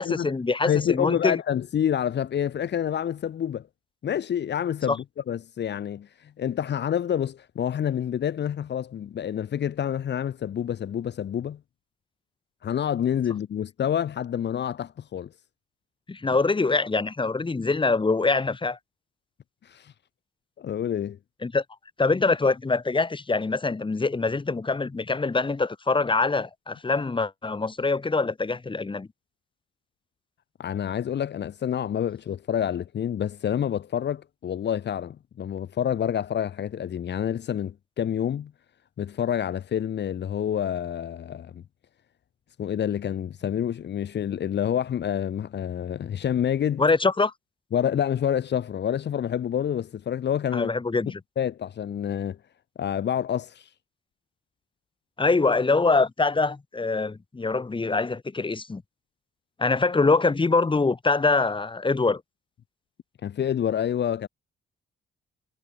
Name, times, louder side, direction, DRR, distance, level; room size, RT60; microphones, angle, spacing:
voice 1, 0.0-1.4 4.9-5.0 16.1-18.8 21.4-21.6 22.0-29.1 46.8-47.3 50.5-51.2 55.2-58.8 59.6-62.2, left 3 dB, 25° left, 7.6 m, -24 dB
voice 2, 0.6-3.7 4.0-11.6 12.6-15.3 19.6-19.9 20.6-21.2 30.6-38.5 39.0-41.6 42.6-46.8 47.7-50.7 51.4-52.4 52.8-53.7 63.2-64.3, left 9 dB, 60° left, 4.0 m, -28 dB
cardioid pair, 90°, 20 cm